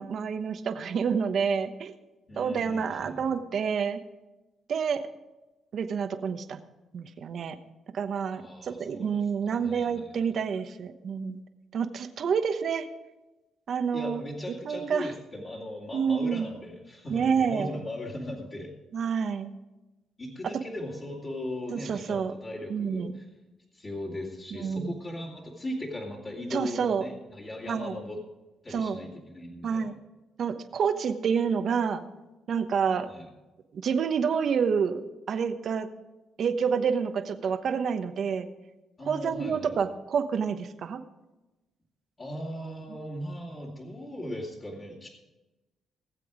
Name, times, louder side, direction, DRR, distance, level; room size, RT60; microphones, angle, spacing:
voice 1, 0.0-1.9 2.4-4.0 4.7-5.0 5.7-6.6 6.9-7.6 7.9-11.4 11.7-12.9 13.7-14.2 14.6-15.1 15.9-16.5 17.1-17.7 18.9-19.5 21.7-22.3 22.7-23.2 24.6-25.0 26.5-27.0 27.7-28.0 28.7-29.0 29.6-29.9 30.4-32.0 32.5-33.1 33.7-35.0 35.3-35.9 36.4-38.5 39.1-41.0, right 6 dB, 60° right, 8 dB, 1.0 m, -28 dB
voice 2, 2.3-3.2 8.3-9.2 9.4-10.1 13.9-18.7 20.2-23.3 23.7-28.2 28.6-29.9 33.1-33.2 39.0-39.8 42.2-45.1, left 1 dB, 35° left, -5 dB, 2.8 m, -38 dB
18.5 x 7.8 x 5.0 m, 1.1 s
cardioid pair, 90°, 0 cm